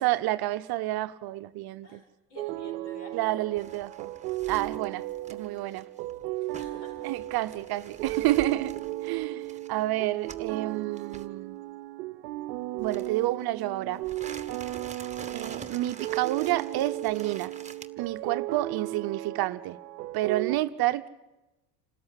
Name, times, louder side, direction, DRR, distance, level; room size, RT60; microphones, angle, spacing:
voice 1, 0.0-2.0 3.1-4.1 4.5-5.9 7.0-8.7 9.0-11.6 12.8-14.0 15.3-17.5 18.0-19.8 20.1-21.1, right 16 dB, 50° right, 0.8 m, -29 dB
voice 2, 1.8-3.6 6.5-7.1 13.9-14.0, left 1 dB, 60° left, 6.3 m, -50 dB
sound 1, 2.4-20.6, right 17 dB, 80° right, 0.8 m, -36 dB
sound 2, 3.6-10.6 11.0-11.3 12.8-13.4 13.9-17.9, right 5 dB, 15° right, 1.5 m, -46 dB
27.5 x 13.5 x 9.9 m
hypercardioid pair, 80°, 49 cm